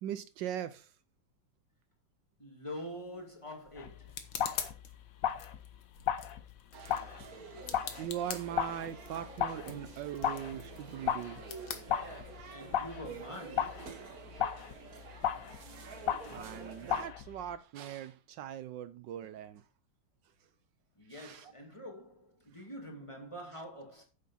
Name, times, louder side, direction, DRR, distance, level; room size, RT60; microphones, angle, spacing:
voice 1, 0.0-0.9 8.0-11.4 16.2-19.6 21.1-21.5, right 10 dB, 75° right, 1.3 m, -40 dB
voice 2, 2.4-4.2 12.5-14.1 21.0-24.0, equal, 15° left, 2.4 m, -45 dB
sound 1, 2.8-12.6, left 8 dB, 75° left, 1.9 m, -46 dB
sound 2, 3.8-17.6, left 9 dB, 55° left, 1.0 m, -37 dB
sound 3, 6.7-17.1, right 5 dB, 55° right, 1.8 m, -49 dB
9.5 x 7.5 x 4.2 m
omnidirectional pair, 2.0 m